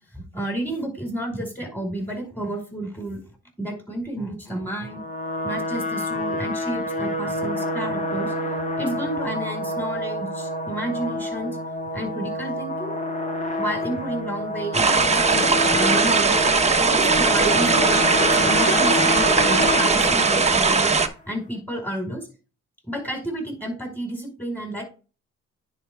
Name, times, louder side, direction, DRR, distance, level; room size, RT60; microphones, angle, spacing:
voice 1, 0.1-3.2 3.6-5.0 5.4-8.3 8.8-11.6 11.9-12.9 13.6-14.8 15.1-16.4 16.8-20.9 21.3-22.3 22.8-24.8, right 1 dB, 5° left, 2 dB, 4.8 m, -31 dB
sound 1, 4.7-21.0, left 1 dB, 25° left, 1.9 m, -27 dB
sound 2, 14.7-21.1, right 4 dB, 20° right, 1.1 m, -19 dB
10.0 x 5.1 x 3.5 m, 0.33 s
cardioid pair, 90°, 30 cm